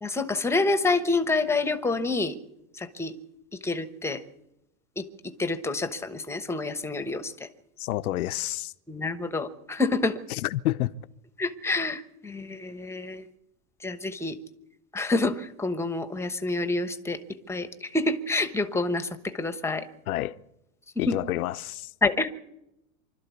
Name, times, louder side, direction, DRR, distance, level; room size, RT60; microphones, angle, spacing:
voice 1, 0.0-2.3 2.7-3.2 3.6-4.2 5.0-7.5 8.9-10.2 11.4-13.2 13.8-14.4 14.9-17.2 17.5-19.9 21.0-21.2 22.0-22.3, left 3 dB, 5° left, 1.0 m, -28 dB
voice 2, 7.8-8.7 10.4-10.9 20.1-20.3 21.0-21.9, left 15 dB, 85° left, 0.8 m, -28 dB
25.0 x 12.5 x 8.3 m
supercardioid pair, 140°, 42 cm